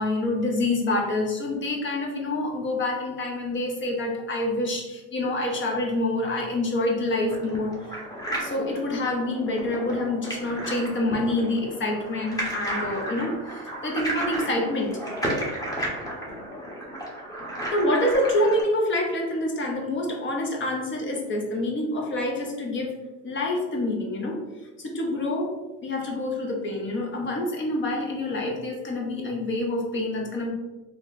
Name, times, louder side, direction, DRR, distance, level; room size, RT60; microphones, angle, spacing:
voice 1, 0.0-8.0 8.4-13.4 13.6-15.0 17.7-22.9 23.2-24.4 24.8-25.5 25.8-30.5, left 1 dB, 30° left, 0 dB, 0.8 m, -27 dB
sound 1, 7.2-18.6, right 1 dB, 10° left, 1.0 m, -33 dB
3.0 x 2.2 x 3.9 m, 1.1 s
supercardioid pair, 100°, 37 cm